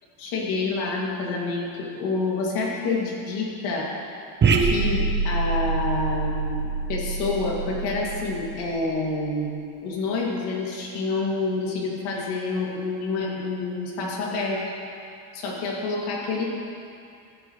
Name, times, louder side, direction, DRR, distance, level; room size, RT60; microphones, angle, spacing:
voice 1, 0.2-3.9 4.6-9.6 9.8-14.6 15.3-16.5, left 3 dB, 80° left, -3 dB, 2.8 m, -28 dB
sound 1, 4.4-9.0, right 4 dB, 30° right, 1.1 m, -25 dB
15.5 x 12.0 x 3.3 m, 2.5 s
cardioid pair, 125°, 38 cm